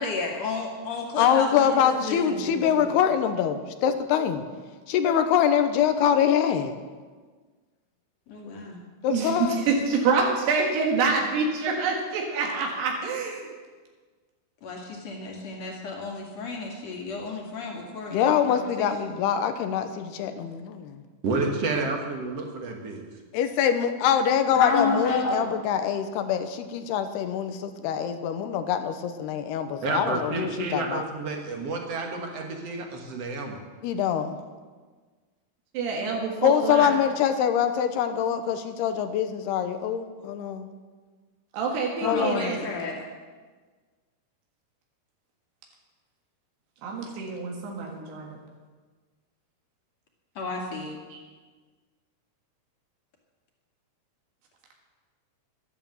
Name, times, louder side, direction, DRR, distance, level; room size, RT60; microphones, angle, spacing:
voice 1, 0.0-2.4 2.8-2.9 8.3-8.8 14.6-18.9 24.5-25.5 42.0-42.9 50.4-51.0, left 3 dB, 50° left, 0 dB, 2.8 m, -31 dB
voice 2, 1.2-4.4 4.9-6.8 9.0-9.6 18.1-21.0 23.3-31.0 33.8-34.4 36.4-40.7 42.0-42.6, left 8 dB, 85° left, 9 dB, 2.9 m, -24 dB
voice 3, 9.1-13.5 35.7-36.9 41.5-42.6 46.8-48.4 51.1-51.2, right 4 dB, 85° right, 0 dB, 3.8 m, -26 dB
voice 4, 21.2-23.0 29.8-33.6, right 3 dB, 55° right, 2 dB, 1.9 m, -30 dB
11.5 x 11.5 x 7.6 m, 1.4 s
omnidirectional pair, 4.6 m